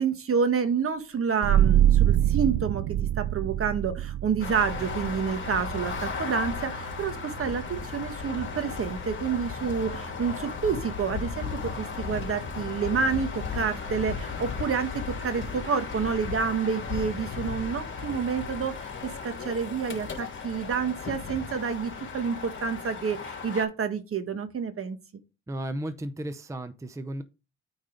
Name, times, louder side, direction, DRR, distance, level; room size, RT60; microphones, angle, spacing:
voice 1, 0.0-25.0, right 6 dB, 45° right, 10 dB, 1.4 m, -29 dB
sound 1, 1.4-12.7, right 12 dB, 75° right, 0.5 m, -28 dB
sound 2, 4.4-23.6, left 5 dB, 40° left, 3.1 m, -35 dB
voice 2, 25.5-27.2, right 1 dB, 10° right, 11 dB, 0.6 m, -34 dB
8.9 x 4.0 x 5.1 m, 0.29 s
cardioid pair, 90°, 30 cm